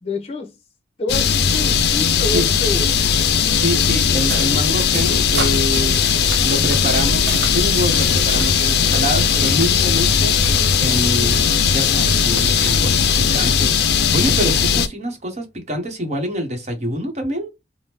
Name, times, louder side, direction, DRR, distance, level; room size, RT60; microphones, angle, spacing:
voice 1, 0.0-0.5 1.0-2.9, left 2 dB, 35° left, 0.8 m, -27 dB
sound 1, 1.1-14.9, left 6 dB, 60° left, 0.4 m, -18 dB
voice 2, 2.1-2.5 3.5-6.0 6.4-10.4 10.8-17.5, equal, 40° right, 1.0 m, -26 dB
sound 2, 3.9-13.2, right 4 dB, 65° right, 0.5 m, -33 dB
3.4 x 2.1 x 2.9 m
head